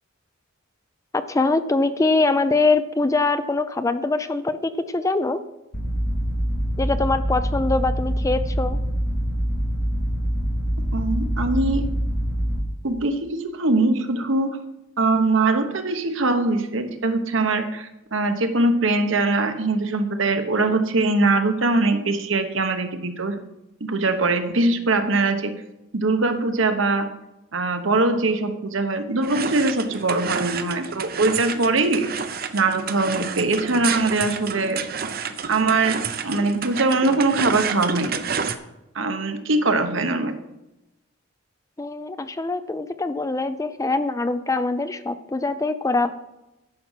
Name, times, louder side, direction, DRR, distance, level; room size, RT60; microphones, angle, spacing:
voice 1, 1.1-5.4 6.8-8.8 41.8-46.1, left 3 dB, 15° left, 11 dB, 0.4 m, -23 dB
sound 1, 5.7-12.6, equal, 70° left, 4.3 m, -25 dB
voice 2, 10.9-11.9 12.8-14.6 15.0-23.4 23.8-25.5 25.9-27.1 27.5-32.1 32.5-34.8 35.5-38.2 38.9-40.3, right 2 dB, 65° right, 7 dB, 1.1 m, -22 dB
sound 2, 29.2-38.5, right 6 dB, 50° right, 0.7 m, -30 dB
10.5 x 6.0 x 7.3 m, 0.96 s
head